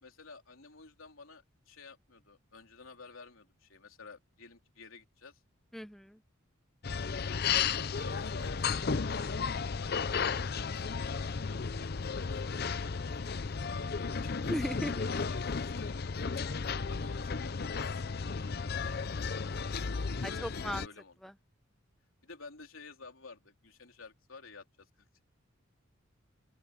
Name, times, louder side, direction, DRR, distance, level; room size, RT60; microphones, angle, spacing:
voice 1, 0.0-5.4 7.2-9.5 9.8-11.9 12.1-16.4 16.9-19.6 20.2-21.2 22.2-25.1, left 4 dB, 80° left, 3.5 m, -52 dB
voice 2, 5.7-6.2 14.5-14.9 20.2-20.9 21.2-21.3, equal, ahead, 0.8 m, -36 dB
sound 1, 6.8-20.9, left 5 dB, 50° left, 0.6 m, -34 dB
open air
head